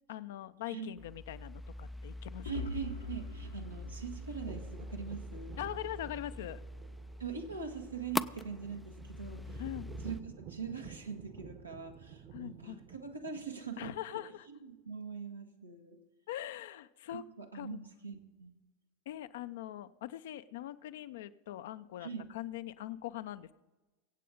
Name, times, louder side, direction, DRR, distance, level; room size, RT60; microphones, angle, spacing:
voice 1, 0.1-2.5 5.6-6.6 9.6-9.9 12.3-12.8 13.8-14.5 16.3-17.2 17.5-17.8 19.1-23.5, left 13 dB, 60° left, 12 dB, 0.6 m, -42 dB
sound 1, 1.0-10.2, left 1 dB, 5° left, 0.4 m, -43 dB
sound 2, 2.4-6.3, left 4 dB, 80° left, 1.3 m, -46 dB
voice 2, 2.4-5.6 7.2-9.6 10.0-13.9 14.5-16.0 17.1-18.5 22.0-22.3, right 6 dB, 90° right, 2 dB, 1.6 m, -42 dB
sound 3, 3.4-13.8, right 7 dB, 45° right, 1.2 m, -52 dB
24.0 x 8.4 x 3.9 m, 1.2 s
figure-of-eight pair, 85°, 0 cm